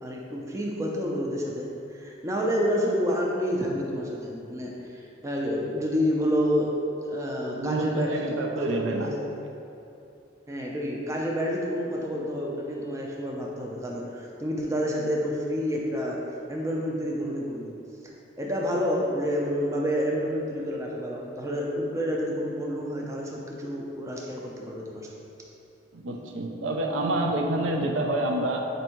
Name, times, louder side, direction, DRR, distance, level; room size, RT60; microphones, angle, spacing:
voice 1, 0.0-6.7 7.0-9.3 10.5-16.2 16.5-17.8 18.4-25.1, equal, 15° right, -2 dB, 0.4 m, -29 dB
voice 2, 7.6-9.1 25.9-28.7, right 1 dB, 85° right, 2 dB, 0.5 m, -28 dB
4.4 x 2.6 x 4.4 m, 2.8 s
head